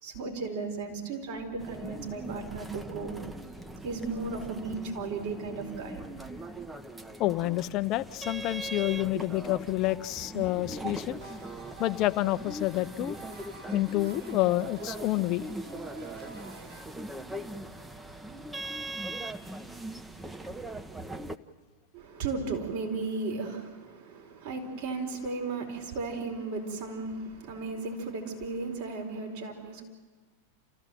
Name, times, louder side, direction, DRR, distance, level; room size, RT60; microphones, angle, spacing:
voice 1, 0.0-3.2 3.8-6.0 9.1-9.2 21.9-29.8, right 3 dB, 60° right, 1 dB, 4.4 m, -35 dB
sound 1, 1.6-21.4, right 1 dB, 10° right, 0.9 m, -40 dB
voice 2, 7.2-11.2 11.8-13.2 13.7-15.5, left 17 dB, 45° left, 12 dB, 0.7 m, -28 dB
sound 2, 11.2-16.8, right 6 dB, 75° right, 2.4 m, -48 dB
29.5 x 15.0 x 7.7 m, 1.4 s
hypercardioid pair, 100°, 0 cm